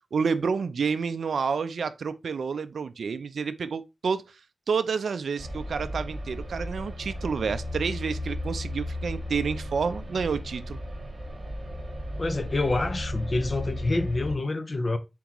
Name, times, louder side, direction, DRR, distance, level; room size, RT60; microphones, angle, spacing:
voice 1, 0.1-4.2 4.7-10.8, right 5 dB, 65° right, 0.4 m, -29 dB
sound 1, 5.4-14.3, left 1 dB, 40° right, 1.5 m, -35 dB
voice 2, 12.2-15.0, left 2 dB, 30° left, 0.5 m, -27 dB
4.4 x 3.0 x 3.7 m
wide cardioid pair, 170°, 0 cm